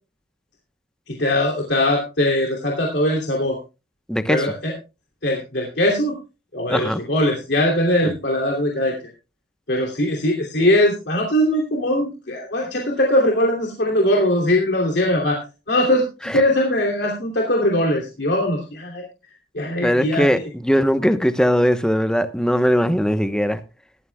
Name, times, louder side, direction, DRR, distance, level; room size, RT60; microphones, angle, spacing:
voice 1, 1.1-3.6 4.3-4.7 5.2-6.1 6.5-8.9 9.7-15.4 15.7-16.0 16.3-19.0 19.5-20.3, left 1 dB, 75° left, -1 dB, 2.8 m, -20 dB
voice 2, 4.1-4.5 6.7-7.0 8.0-8.1 16.2-16.4 19.8-23.6, equal, 5° left, 10 dB, 0.9 m, -20 dB
17.5 x 13.0 x 2.3 m, 0.31 s
head